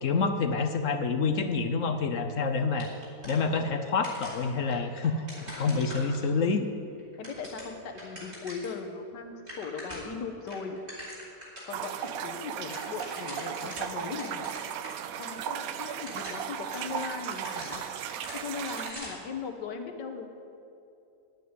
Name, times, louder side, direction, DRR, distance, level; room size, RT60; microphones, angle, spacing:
voice 1, 0.0-2.9 3.2-5.1 5.5-6.7, left 4 dB, 60° left, 7 dB, 0.9 m, -27 dB
sound 1, 2.8-6.5 7.0-8.8 9.1-9.2 9.4-10.2 10.5-11.7 12.0-12.1 12.4-14.9 15.2-15.3 15.9-19.3, equal, 40° right, 3.8 m, -44 dB
voice 2, 7.2-10.8 11.6-14.5 15.2-17.8 18.3-20.3, left 5 dB, 90° left, 5 dB, 1.8 m, -38 dB
sound 2, 11.7-18.9, right 9 dB, 65° right, 1.0 m, -36 dB
10.5 x 9.1 x 9.4 m, 2.7 s
omnidirectional pair, 1.8 m